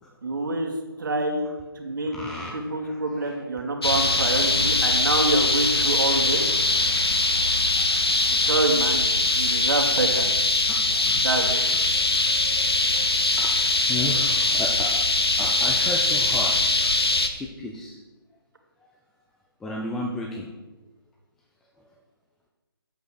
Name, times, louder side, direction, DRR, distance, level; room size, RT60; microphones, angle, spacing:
voice 1, 0.2-0.7 1.0-1.5 1.8-2.2 2.5-6.4 8.3-9.0 9.4-10.3 11.2-11.7, right 2 dB, 55° right, 2 dB, 2.3 m, -26 dB
voice 2, 2.1-3.4 10.7-11.3 13.4-13.5 13.9-14.9 15.4-16.5 17.3-18.0 19.6-20.5, left 1 dB, 5° left, -2 dB, 0.5 m, -33 dB
sound 1, 3.8-17.3, left 2 dB, 90° left, 1.3 m, -22 dB
9.4 x 8.2 x 6.3 m, 1.2 s
figure-of-eight pair, 155°, 13 cm